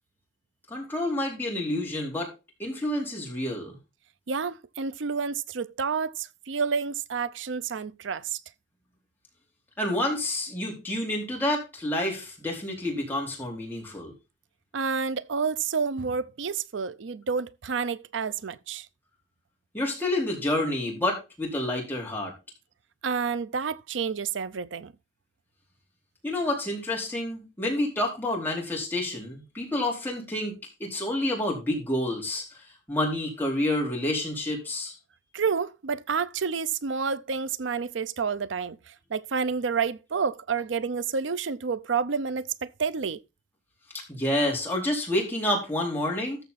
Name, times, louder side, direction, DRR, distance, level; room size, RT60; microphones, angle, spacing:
voice 1, 0.7-2.3 2.6-3.8 9.8-14.1 19.7-22.3 26.2-30.5 30.8-32.6 32.9-35.0 44.1-46.4, left 1 dB, 10° left, 4.3 m, -29 dB
voice 2, 4.3-8.4 14.7-18.9 23.0-24.9 35.3-43.2, right 5 dB, 85° right, 0.6 m, -29 dB
14.0 x 5.7 x 4.1 m
head